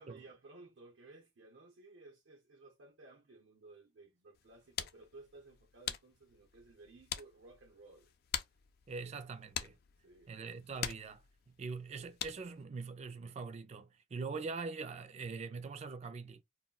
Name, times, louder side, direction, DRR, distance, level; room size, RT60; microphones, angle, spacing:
voice 1, 0.0-8.1 10.0-10.3, right 3 dB, 80° right, 0.7 m, -57 dB
sound 1, 4.3-12.6, left 9 dB, 55° left, 0.3 m, -45 dB
voice 2, 8.9-9.8 10.3-16.4, right 4 dB, 35° right, 0.3 m, -43 dB
2.2 x 2.1 x 3.7 m
head